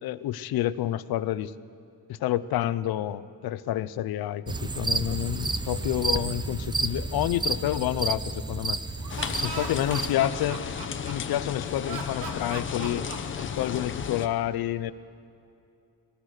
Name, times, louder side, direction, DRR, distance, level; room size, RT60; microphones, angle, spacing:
voice 1, 0.0-1.5 2.1-8.8 9.4-10.6 11.1-13.1 13.4-14.9, left 13 dB, 80° left, 16 dB, 0.7 m, -29 dB
sound 1, 4.5-10.1, right 3 dB, 15° right, 0.4 m, -31 dB
Laughter, 8.9-11.4 11.9-13.9, right 4 dB, 80° right, 2.1 m, -38 dB
sound 2, 9.1-14.3, left 7 dB, 35° left, 0.9 m, -34 dB
22.0 x 18.0 x 6.5 m, 2.6 s
cardioid pair, 175°, 36 cm